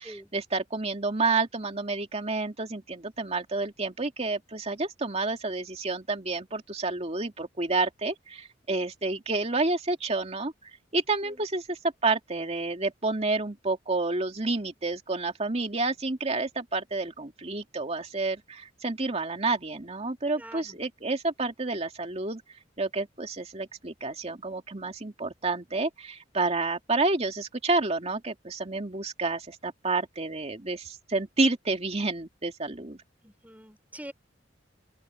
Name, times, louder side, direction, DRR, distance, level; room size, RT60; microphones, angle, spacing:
voice 1, 0.0-22.4 22.8-33.0, right 3 dB, 35° right, 2.4 m, -29 dB
voice 2, 20.4-20.8 33.2-34.1, right 1 dB, 10° right, 3.5 m, -45 dB
open air
head